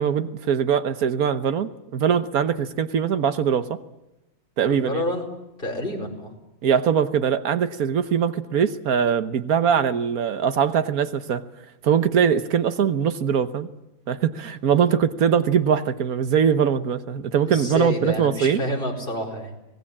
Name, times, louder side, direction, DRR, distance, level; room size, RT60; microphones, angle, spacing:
voice 1, 0.0-3.8 4.6-5.0 6.6-11.4 11.8-13.7 14.1-18.6, right 7 dB, 80° right, 11 dB, 1.5 m, -22 dB
voice 2, 4.7-5.3 5.6-6.3 17.5-19.6, left 1 dB, 35° left, 2 dB, 4.8 m, -28 dB
24.5 x 18.5 x 8.6 m, 0.95 s
omnidirectional pair, 1.5 m